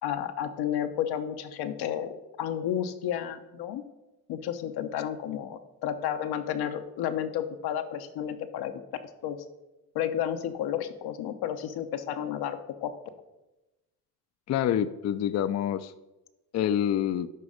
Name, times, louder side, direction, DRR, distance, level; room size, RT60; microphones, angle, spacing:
voice 1, 0.0-3.8 4.3-8.7 9.2-9.4 9.9-12.9, left 10 dB, 85° left, 8 dB, 0.8 m, -32 dB
voice 2, 14.5-15.9 16.5-17.3, left 10 dB, 45° left, 12 dB, 0.4 m, -27 dB
11.0 x 4.1 x 5.0 m, 1.0 s
cardioid pair, 100°, 37 cm